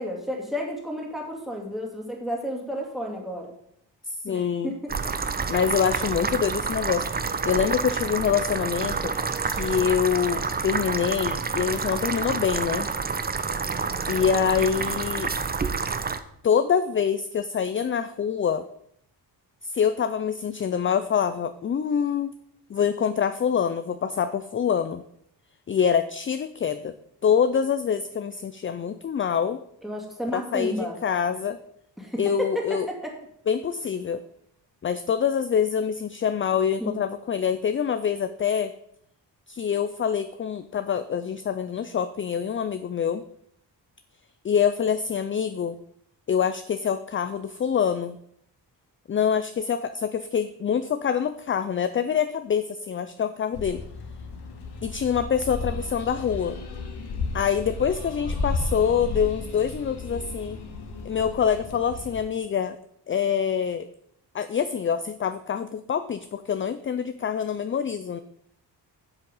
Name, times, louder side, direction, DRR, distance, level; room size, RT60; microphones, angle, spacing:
voice 1, 0.0-3.5 4.3-4.9 29.8-31.0 32.0-33.2 36.8-36.9, equal, ahead, -1 dB, 2.3 m, -32 dB
voice 2, 4.2-4.7 5.5-7.1 7.4-9.1 9.4-12.9 14.1-15.3 16.4-18.6 19.6-22.3 22.7-25.0 25.7-26.9 27.2-29.6 30.3-31.6 32.2-32.9 33.5-34.2 34.8-38.7 39.5-43.2 44.4-45.8 46.3-48.2 49.1-53.8 54.8-56.6 57.3-60.6 61.0-62.8 63.1-63.9 64.3-68.2, left 7 dB, 30° left, 11 dB, 0.4 m, -25 dB
sound 1, 4.9-16.2, right 5 dB, 25° right, 0.6 m, -28 dB
sound 2, 53.5-62.2, left 3 dB, 70° left, 1.5 m, -34 dB
7.8 x 7.4 x 5.4 m, 0.71 s
cardioid pair, 115°, 41 cm